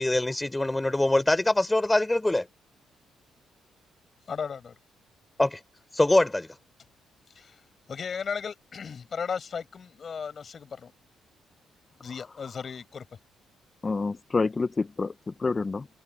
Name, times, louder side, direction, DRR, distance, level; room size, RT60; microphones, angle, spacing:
voice 1, 0.0-2.5 5.4-5.6 5.9-6.5, left 2 dB, 15° left, 3.7 m, -23 dB
voice 2, 4.3-4.8 7.4-7.6 7.9-10.9 12.0-13.1, left 6 dB, 45° left, 5.4 m, -35 dB
voice 3, 13.8-15.9, left 4 dB, 30° left, 0.9 m, -28 dB
cardioid pair, 90°, 0 cm